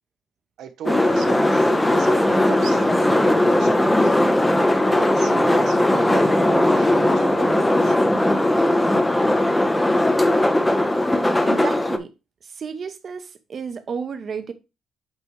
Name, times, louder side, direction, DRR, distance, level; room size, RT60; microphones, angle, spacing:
voice 1, 0.6-4.1 4.7-8.0, right 9 dB, 75° right, 0.9 m, -36 dB
sound 1, 0.8-12.0, left 1 dB, 10° left, 0.6 m, -18 dB
voice 2, 11.4-12.1 12.4-14.5, right 6 dB, 40° right, 0.9 m, -31 dB
8.2 x 3.1 x 4.6 m
cardioid pair, 155°, 0 cm